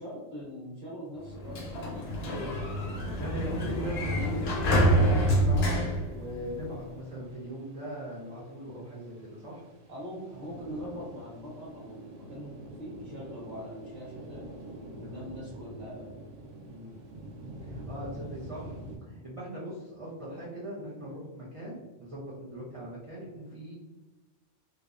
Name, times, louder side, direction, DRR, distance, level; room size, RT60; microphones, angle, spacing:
voice 1, 0.0-1.9 3.3-3.8 9.9-14.4 14.7-16.1 18.1-18.3, equal, 40° right, -10 dB, 1.1 m, -42 dB
Sliding door, 1.3-6.9, equal, 60° left, 0.7 m, -27 dB
sound 1, 1.4-19.0, right 1 dB, 80° right, 1.0 m, -47 dB
voice 2, 2.2-2.6 3.2-9.6 15.0-15.3 16.7-17.0 17.6-18.8 19.1-23.7, right 1 dB, 55° right, -7 dB, 0.3 m, -40 dB
2.7 x 2.0 x 2.3 m, 1.1 s
omnidirectional pair, 1.3 m